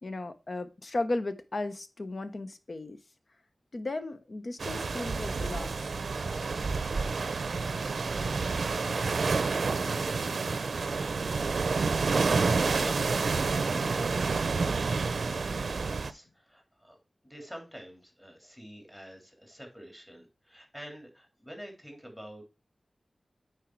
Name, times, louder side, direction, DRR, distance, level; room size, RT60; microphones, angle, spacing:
voice 1, 0.0-3.0 3.7-5.7 9.2-9.3, left 2 dB, 55° left, 0.9 m, -35 dB
sound 1, 4.6-16.1, right 4 dB, 85° right, 0.5 m, -29 dB
voice 2, 12.1-17.0 17.2-22.4, equal, 10° left, 2.9 m, -48 dB
9.1 x 4.6 x 4.5 m
wide cardioid pair, 85°, 0 cm